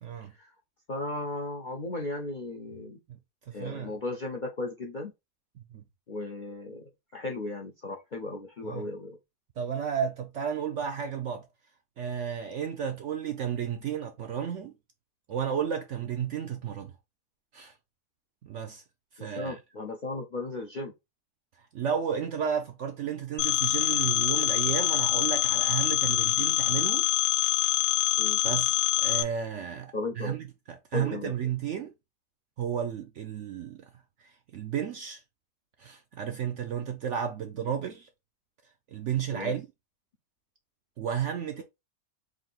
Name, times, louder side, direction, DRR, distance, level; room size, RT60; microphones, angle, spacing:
voice 1, 0.0-0.3 3.5-4.0 5.7-5.8 8.6-8.9 9.6-11.5 12.0-14.7 15.3-16.9 17.5-17.7 18.4-18.8 19.1-19.6 21.6-27.1 27.6-27.8 28.4-31.9 32.6-33.9 34.2-35.2 35.8-38.1 38.9-39.7 41.0-41.6, right 8 dB, 70° right, 0.7 m, -33 dB
voice 2, 0.9-3.0 3.5-5.1 6.1-6.8 7.1-9.2 19.2-20.9 28.2-28.4 29.9-30.4 30.9-31.3 39.3-39.6, left 2 dB, 55° left, 0.5 m, -36 dB
Telephone, 23.4-29.2, left 14 dB, 80° left, 1.1 m, -25 dB
3.7 x 2.6 x 3.8 m
omnidirectional pair, 1.7 m